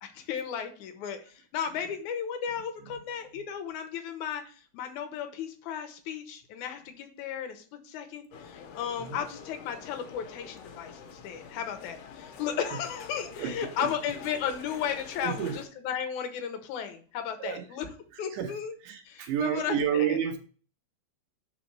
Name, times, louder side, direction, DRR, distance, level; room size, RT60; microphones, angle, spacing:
voice 1, 0.0-17.9 18.2-18.7 19.1-20.2, left 8 dB, 75° left, 6 dB, 2.2 m, -35 dB
sound 1, 8.3-15.7, left 6 dB, 90° left, 2.4 m, -47 dB
voice 2, 15.2-15.6 17.4-17.6 18.3-18.5 18.8-20.4, right 9 dB, 75° right, 5 dB, 2.3 m, -30 dB
5.1 x 4.2 x 6.0 m, 0.41 s
omnidirectional pair, 3.7 m